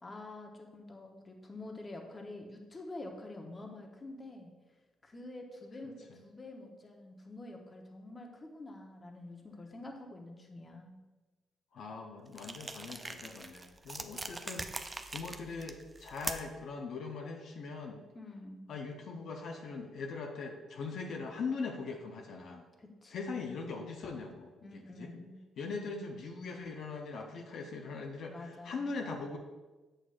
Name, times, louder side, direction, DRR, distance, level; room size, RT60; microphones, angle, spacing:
voice 1, 0.0-4.5 5.0-11.0 18.1-18.7 22.8-23.6 24.6-25.4 28.3-28.9, left 2 dB, 25° left, 2 dB, 0.9 m, -47 dB
voice 2, 11.7-18.0 18.7-22.7 23.1-25.1 25.6-29.4, left 4 dB, 70° left, 1 dB, 0.7 m, -41 dB
sound 1, 12.3-16.6, right 3 dB, 25° right, 0.4 m, -42 dB
7.8 x 6.4 x 2.5 m, 1.2 s
cardioid pair, 90°, 0 cm